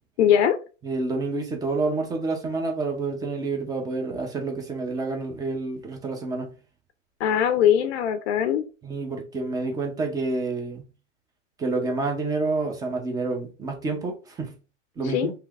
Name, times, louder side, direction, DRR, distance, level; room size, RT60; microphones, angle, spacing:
voice 1, 0.2-0.6 7.2-8.6 15.0-15.3, left 9 dB, 60° left, 0.5 m, -21 dB
voice 2, 0.8-6.5 8.8-10.9 11.6-14.5 15.0-15.3, right 3 dB, 10° right, 0.5 m, -28 dB
3.1 x 2.9 x 2.3 m
hypercardioid pair, 120°, 39 cm